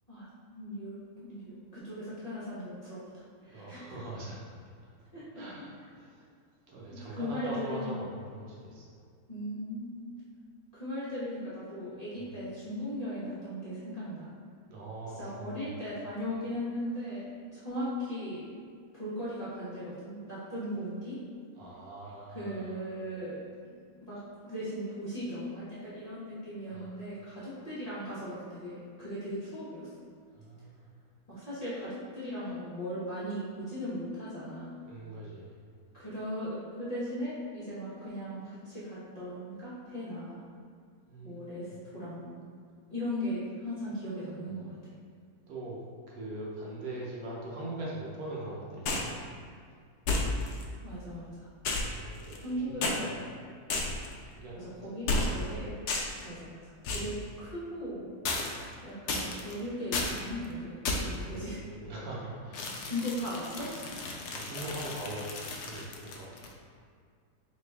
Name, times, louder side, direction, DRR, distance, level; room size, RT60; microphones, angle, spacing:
voice 1, 0.1-3.8 5.1-5.5 6.9-7.9 9.3-10.0 10.7-14.3 15.2-18.5 18.9-21.2 22.3-23.4 24.0-29.9 31.3-34.7 35.9-40.4 41.2-41.7 41.9-42.4 42.9-44.7 50.8-51.5 52.4-53.2 54.5-55.7 56.2-58.1 58.8-61.6 62.8-63.9, equal, 30° left, -12 dB, 0.9 m, -38 dB
voice 2, 3.5-4.4 5.3-6.2 6.7-8.9 14.7-15.7 21.6-22.7 26.7-27.1 30.3-30.8 34.9-35.6 41.1-41.7 45.5-45.8 46.1-49.2 51.9-53.2 54.3-54.7 60.9-62.7 64.2-66.4, right 2 dB, 70° right, -4 dB, 1.2 m, -42 dB
sound 1, 48.9-49.2 50.1-50.6 51.6-52.5 52.8-53.0 53.7-54.1 55.1-55.5 55.9-56.2 56.8-57.2 58.2-58.7 59.1-59.5 59.9-60.2 60.8-61.2 62.5-66.5, left 3 dB, 85° left, 1.1 m, -33 dB
4.0 x 3.0 x 3.3 m, 2.2 s
omnidirectional pair, 1.7 m